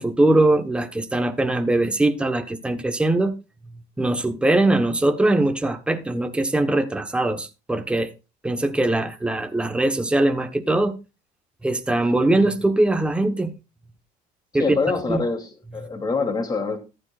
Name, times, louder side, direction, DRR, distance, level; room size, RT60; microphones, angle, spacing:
voice 1, 0.0-3.3 4.0-8.1 8.4-10.9 11.6-13.5 14.5-14.8 15.1-15.2, right 2 dB, 5° right, 1.1 m, -21 dB
voice 2, 14.6-16.8, left 4 dB, 20° left, 2.8 m, -25 dB
14.0 x 12.0 x 2.4 m
cardioid pair, 145°, 18 cm